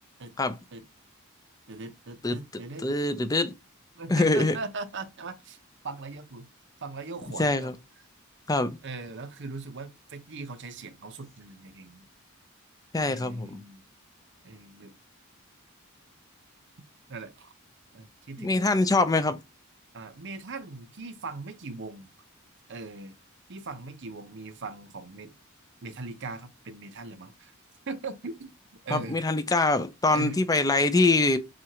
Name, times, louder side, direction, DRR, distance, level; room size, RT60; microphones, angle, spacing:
voice 1, 1.7-2.9 4.0-5.6 5.8-6.5 6.8-7.7 8.8-12.1 13.0-13.9 14.4-14.9 17.1-17.5 17.9-19.1 19.9-22.1 22.7-23.2 23.5-25.3 25.8-27.5 27.9-28.5 28.8-29.2 30.1-30.4, right 3 dB, 60° right, 0.8 m, -40 dB
voice 2, 2.8-3.5 4.1-4.6 7.4-7.7 8.5-8.8 12.9-13.6 18.4-19.4 28.9-31.4, left 2 dB, 15° left, 0.5 m, -24 dB
7.5 x 2.5 x 2.9 m
head